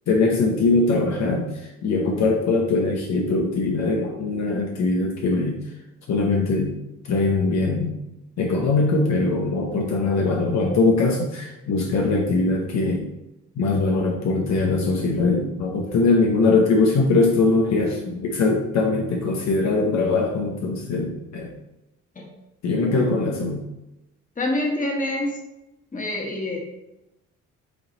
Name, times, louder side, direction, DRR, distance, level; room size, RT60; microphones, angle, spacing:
voice 1, 0.1-5.6 6.1-6.8 7.1-7.9 8.4-13.0 13.6-21.5 22.6-23.6, left 3 dB, 65° left, 0 dB, 0.9 m, -21 dB
voice 2, 24.4-25.4 25.9-26.6, left 1 dB, 25° left, 0 dB, 1.7 m, -26 dB
8.4 x 3.0 x 4.0 m, 0.94 s
cardioid pair, 90°, 30 cm